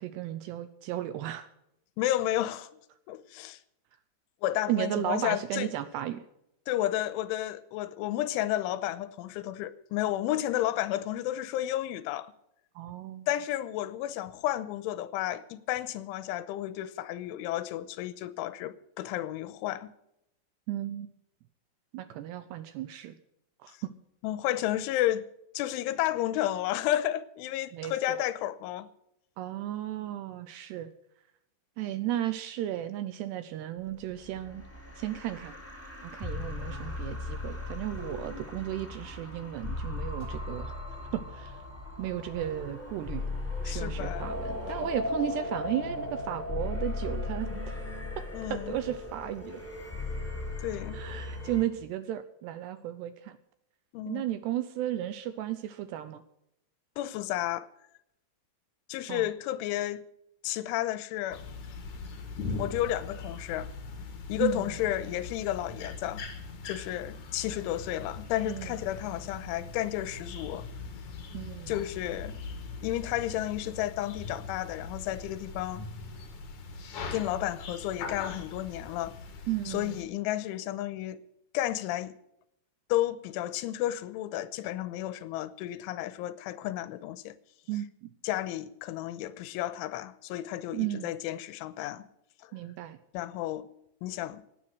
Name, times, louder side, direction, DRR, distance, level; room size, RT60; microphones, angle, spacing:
voice 1, 0.0-1.5 4.7-6.3 12.8-13.3 20.7-21.1 21.9-23.1 23.6-23.9 27.7-28.2 29.4-30.9 31.8-34.7 35.0-35.6 36.0-40.8 41.1-41.7 42.0-43.2 43.6-47.8 48.5-49.7 50.9-53.4 54.1-56.2 59.1-59.3 64.4-64.8 68.5-68.8 71.3-71.8 79.5-80.0 87.7-88.1 90.7-91.1 92.5-93.0, right 12 dB, 80° right, 2.5 m, -34 dB
voice 2, 2.0-2.7 3.1-3.6 4.4-5.7 6.7-12.3 13.3-19.9 24.2-25.2 25.5-28.9 43.7-44.3 48.3-48.8 50.6-51.0 53.9-54.3 57.0-57.7 58.9-60.0 60.4-61.4 62.6-63.7 64.3-66.2 66.7-70.7 71.7-72.4 72.8-75.9 77.1-79.1 79.7-81.2 81.5-82.2 82.9-87.4 88.2-92.1 92.4-92.5 93.1-93.7 94.0-94.4, left 13 dB, 90° left, 3.2 m, -32 dB
sound 1, 34.0-51.6, left 2 dB, 5° left, 2.3 m, -37 dB
sound 2, 36.6-49.1, right 1 dB, 15° right, 5.3 m, -49 dB
sound 3, 61.3-80.0, left 4 dB, 50° left, 2.6 m, -41 dB
17.5 x 10.0 x 6.4 m
omnidirectional pair, 5.5 m